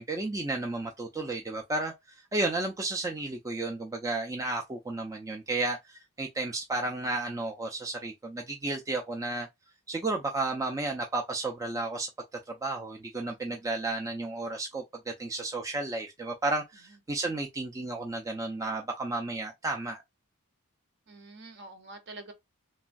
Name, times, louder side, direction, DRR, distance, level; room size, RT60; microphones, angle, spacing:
voice 1, 0.0-1.9 2.3-9.5 9.9-12.1 12.5-20.0, right 2 dB, 15° right, 0.3 m, -32 dB
voice 2, 21.1-22.3, right 2 dB, 50° right, 0.7 m, -47 dB
3.1 x 2.3 x 2.5 m
head